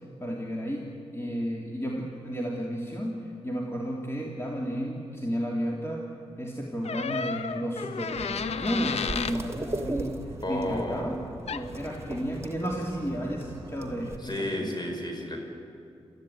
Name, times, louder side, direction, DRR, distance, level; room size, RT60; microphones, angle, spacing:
voice 1, 0.2-6.1 6.4-10.2 10.5-11.2 11.5-14.7, equal, 25° left, -2 dB, 3.1 m, -32 dB
sound 1, 6.8-9.4 11.5-11.7, left 5 dB, 80° left, 0.8 m, -32 dB
sound 2, 8.1-14.2, right 2 dB, 25° right, 2.3 m, -38 dB
voice 2, 10.3-11.1 14.2-15.4, left 1 dB, 45° left, 3 dB, 5.4 m, -32 dB
28.0 x 14.0 x 9.4 m, 2.5 s
cardioid pair, 50°, 11 cm